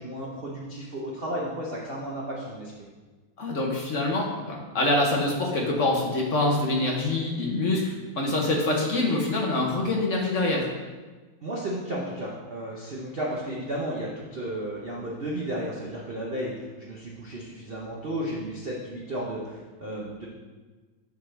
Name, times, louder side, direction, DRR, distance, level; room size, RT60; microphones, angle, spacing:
voice 1, 0.0-2.7 11.4-20.3, right 1 dB, 80° right, -4 dB, 0.5 m, -33 dB
voice 2, 3.4-10.7, left 2 dB, 55° left, -1 dB, 0.9 m, -25 dB
7.0 x 6.5 x 3.3 m, 1.3 s
omnidirectional pair, 2.4 m